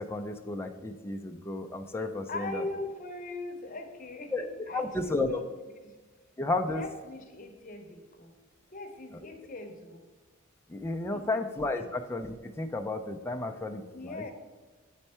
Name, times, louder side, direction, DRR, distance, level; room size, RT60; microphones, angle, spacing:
voice 1, 0.0-2.6 4.3-4.5 4.7-5.4 6.4-6.8 10.7-14.2, left 2 dB, 10° left, 3 dB, 0.4 m, -32 dB
voice 2, 2.3-5.4 5.8-6.0 6.6-8.4 8.7-10.0 11.1-11.4 11.7-11.9 13.9-14.3, left 2 dB, 40° left, 4 dB, 0.8 m, -40 dB
8.1 x 4.4 x 4.3 m, 1.3 s
head